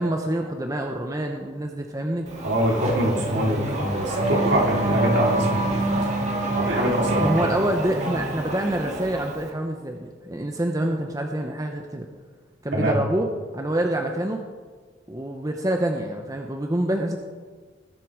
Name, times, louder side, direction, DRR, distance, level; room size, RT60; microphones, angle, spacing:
voice 1, 0.0-2.3 7.2-12.1 12.6-13.3 13.5-14.4 15.1-17.2, right 1 dB, 20° right, 3 dB, 0.8 m, -26 dB
Race car auto racing / Accelerating revving vroom, 2.3-9.5, right 2 dB, 35° right, 2.0 m, -26 dB
voice 2, 2.4-6.0 6.5-7.3 12.7-13.0, equal, 60° right, -1 dB, 2.9 m, -24 dB
19.5 x 7.7 x 5.0 m, 1.5 s
head